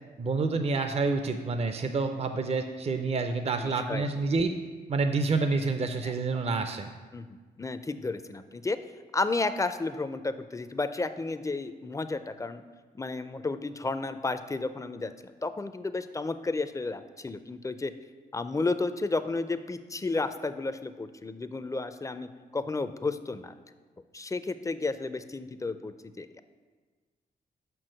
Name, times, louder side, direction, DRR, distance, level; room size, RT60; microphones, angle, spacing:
voice 1, 0.2-4.5 4.9-6.9, right 3 dB, 35° right, 7 dB, 0.5 m, -28 dB
voice 2, 3.6-4.1 6.0-6.1 7.1-8.8 9.1-12.6 12.9-17.9 18.3-23.5 24.1-26.4, left 3 dB, 20° left, 11 dB, 0.5 m, -32 dB
5.8 x 4.6 x 6.3 m, 1.4 s
cardioid pair, 60°, 18 cm